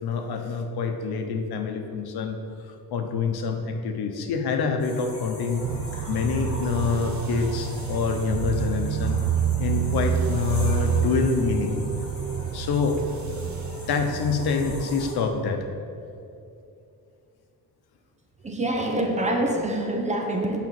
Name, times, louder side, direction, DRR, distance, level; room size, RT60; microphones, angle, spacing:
voice 1, 0.0-2.4 2.9-5.6 6.1-9.2 9.6-11.7 12.5-13.0 13.9-15.6, left 5 dB, 85° left, 5 dB, 1.0 m, -26 dB
sound 1, 4.8-15.1, left 1 dB, 40° left, 2.1 m, -41 dB
sound 2, 5.6-14.8, right 7 dB, 50° right, 0.4 m, -28 dB
voice 2, 18.4-20.6, right 1 dB, 20° right, 2 dB, 1.0 m, -25 dB
9.0 x 5.1 x 7.6 m, 2.7 s
wide cardioid pair, 160°, 37 cm